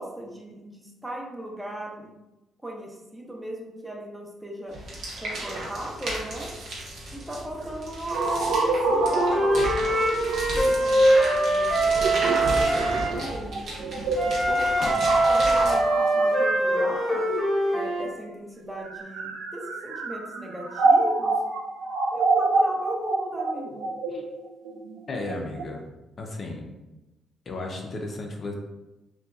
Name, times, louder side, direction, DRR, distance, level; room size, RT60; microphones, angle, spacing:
voice 1, 0.0-2.1 2.6-4.8 5.2-6.6 7.1-9.8 10.3-11.1 11.4-13.9 14.3-17.3 17.7-21.4 22.1-23.9, right 1 dB, 10° right, -1 dB, 0.5 m, -37 dB
sound 1, 4.7-15.8, right 1 dB, 65° right, 0.8 m, -34 dB
sound 2, 8.1-17.9 18.7-25.6, right 3 dB, 85° right, 0.3 m, -27 dB
Wind instrument woodwind instrument, 9.0-13.1 14.2-18.1, right 1 dB, 10° left, 0.8 m, -23 dB
voice 2, 25.1-25.9 26.2-26.7 27.5-28.5, left 2 dB, 45° left, 1 dB, 0.4 m, -34 dB
2.7 x 2.2 x 2.3 m, 1.0 s
cardioid pair, 90°, 0 cm